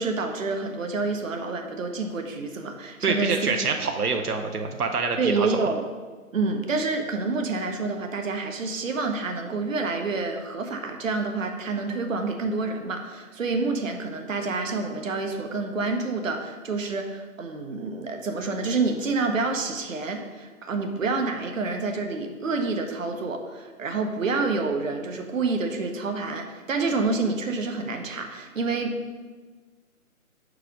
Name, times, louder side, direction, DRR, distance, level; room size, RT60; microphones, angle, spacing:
voice 1, 0.0-3.4 5.2-5.8 6.3-29.2, right 3 dB, 60° right, 4 dB, 1.0 m, -28 dB
voice 2, 3.0-5.5, right 4 dB, 85° right, 4 dB, 0.9 m, -26 dB
5.8 x 4.9 x 5.1 m, 1.4 s
figure-of-eight pair, 160°, 44 cm